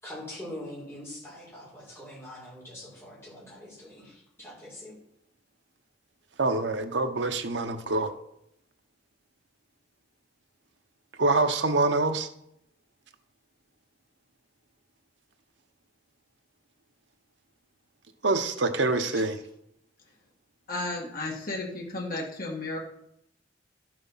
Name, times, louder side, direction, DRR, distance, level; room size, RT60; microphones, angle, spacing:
voice 1, 0.0-4.9, left 1 dB, 15° left, -6 dB, 5.1 m, -43 dB
voice 2, 6.4-8.1 11.2-12.3 18.2-19.4, right 3 dB, 70° right, 7 dB, 1.0 m, -25 dB
voice 3, 20.7-22.8, left 2 dB, 50° left, -2 dB, 2.0 m, -33 dB
11.5 x 7.8 x 5.7 m, 0.77 s
head